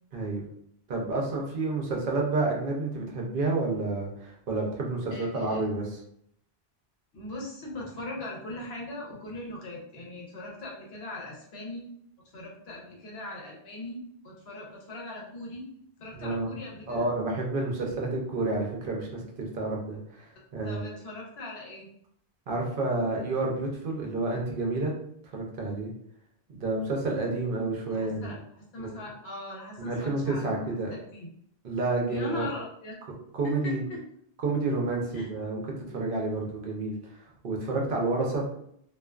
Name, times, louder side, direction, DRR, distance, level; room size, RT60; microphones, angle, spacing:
voice 1, 0.1-0.4 0.9-6.0 16.2-16.5 16.9-20.8 22.5-24.9 25.3-25.9 26.6-28.4 28.8-29.0 29.8-30.9 31.6-32.5 33.4-33.8 34.4-35.6 35.9-37.0 37.4-38.4, right 2 dB, 60° right, -1 dB, 0.7 m, -29 dB
voice 2, 5.1-5.6 7.1-11.9 12.3-15.7 16.0-17.1 20.6-21.9 27.9-31.3 32.1-32.9 33.4-34.0 35.1-35.3, left 1 dB, 75° left, -2 dB, 1.0 m, -40 dB
2.4 x 2.3 x 2.3 m, 0.70 s
omnidirectional pair, 1.1 m